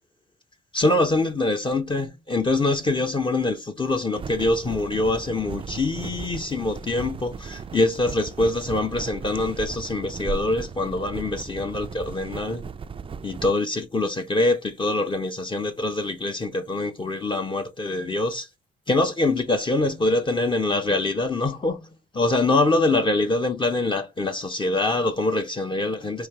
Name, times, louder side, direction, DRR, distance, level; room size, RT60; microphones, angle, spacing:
voice 1, 0.7-12.6 13.2-18.5 18.9-21.9 22.1-26.3, left 2 dB, 25° left, 0.7 m, -24 dB
sound 1, 4.1-13.5, right 5 dB, 25° right, 0.4 m, -36 dB
5.0 x 2.8 x 2.8 m
cardioid pair, 90°, 20 cm